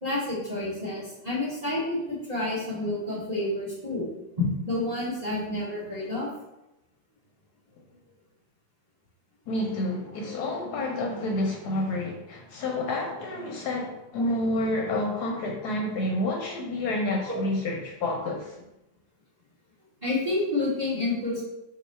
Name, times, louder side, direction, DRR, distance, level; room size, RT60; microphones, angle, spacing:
voice 1, 0.0-4.1 4.3-6.3 13.2-13.3 14.1-14.2 14.8-14.9 17.3-17.4 20.0-21.4, left 2 dB, 25° right, -7 dB, 1.1 m, -29 dB
voice 2, 9.5-18.6, left 1 dB, 70° left, 0 dB, 1.1 m, -29 dB
4.1 x 3.0 x 4.2 m, 0.92 s
omnidirectional pair, 2.0 m